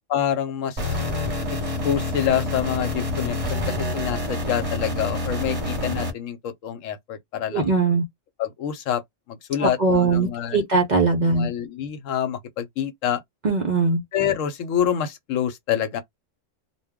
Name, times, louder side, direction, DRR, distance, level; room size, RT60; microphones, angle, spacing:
voice 1, 0.1-1.0 1.8-7.7 8.4-9.0 9.3-10.7 11.2-13.2 14.1-16.0, left 9 dB, 80° left, 1.0 m, -27 dB
sound 1, 0.8-6.1, left 2 dB, 30° right, 0.9 m, -27 dB
voice 2, 7.5-8.0 9.6-11.5 13.4-14.0, right 3 dB, 50° right, 0.5 m, -20 dB
2.2 x 2.2 x 3.5 m
omnidirectional pair, 1.3 m